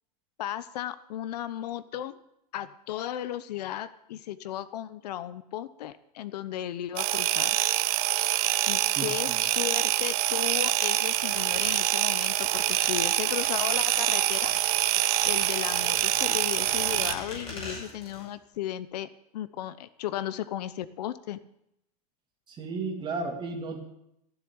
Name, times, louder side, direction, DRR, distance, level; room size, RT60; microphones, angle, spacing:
voice 1, 0.4-2.2 2.5-7.6 8.7-14.5 15.0-19.1 19.3-21.4, left 12 dB, 90° left, 15 dB, 0.9 m, -35 dB
sound 1, 7.0-17.1, right 15 dB, 65° right, 1.0 m, -26 dB
voice 2, 9.0-9.4 22.5-23.8, right 3 dB, 25° right, 1 dB, 2.7 m, -34 dB
sound 2, 11.1-18.3 18.5-18.6, left 2 dB, 30° left, 6.2 m, -42 dB
15.5 x 7.3 x 8.9 m, 0.80 s
supercardioid pair, 150°, 20 cm